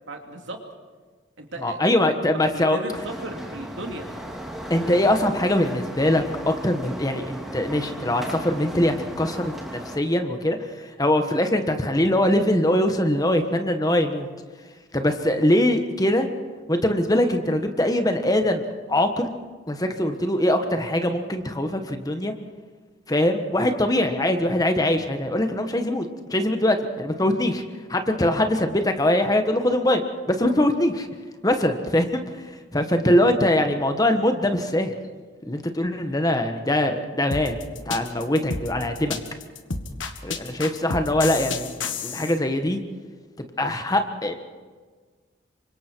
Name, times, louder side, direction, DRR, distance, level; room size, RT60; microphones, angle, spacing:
voice 1, 0.1-0.6 1.4-4.1, right 1 dB, 75° right, 2 dB, 2.9 m, -36 dB
voice 2, 1.6-2.8 4.7-9.5 9.9-14.3 14.9-16.3 16.7-19.3 19.7-22.3 23.1-27.6 27.9-30.0 30.3-31.1 31.4-32.2 32.7-34.9 35.5-37.5 37.9-39.2 40.2-42.8 43.6-44.3, left 1 dB, 20° left, 6 dB, 1.4 m, -22 dB
sound 1, 2.9-10.0, equal, ahead, 2.7 m, -36 dB
sound 2, 37.3-42.3, left 4 dB, 85° left, 1.7 m, -30 dB
28.0 x 25.0 x 4.6 m, 1.5 s
head